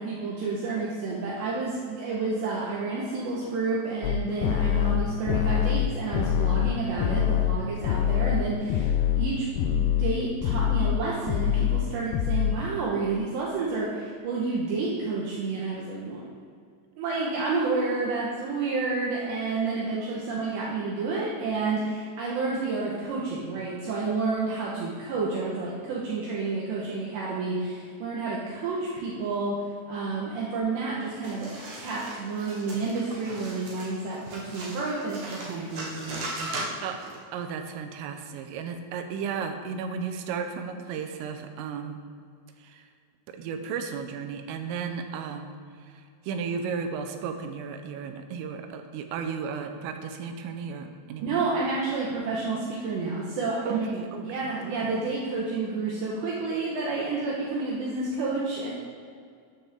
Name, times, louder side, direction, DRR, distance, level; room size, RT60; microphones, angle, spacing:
voice 1, 0.0-9.5 9.7-16.2 17.0-36.7 51.2-53.9 54.2-58.7, right 3 dB, 70° right, -5 dB, 3.2 m, -30 dB
sound 1, 4.0-9.3 9.6-10.1 10.4-11.0 11.3-11.9 12.1-12.5, left 10 dB, 85° left, 2.6 m, -24 dB
sound 2, 31.2-37.2, right 2 dB, 50° right, 2.8 m, -38 dB
voice 2, 36.8-42.0 42.6-42.9 43.3-51.4 53.7-54.9, right 6 dB, 85° right, 6 dB, 3.5 m, -34 dB
13.0 x 9.4 x 3.7 m, 2.2 s
omnidirectional pair, 5.7 m